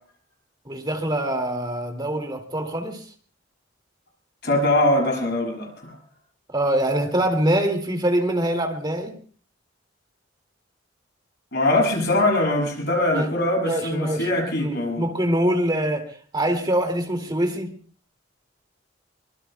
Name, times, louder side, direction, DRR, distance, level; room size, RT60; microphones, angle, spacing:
voice 1, 0.7-3.0 6.5-9.1 13.1-13.3 13.7-14.3 14.5-17.7, right 1 dB, 20° right, 4 dB, 2.4 m, -24 dB
voice 2, 4.4-5.9 11.5-15.1, left 1 dB, 55° left, 1 dB, 7.1 m, -22 dB
24.0 x 21.5 x 2.3 m, 0.42 s
head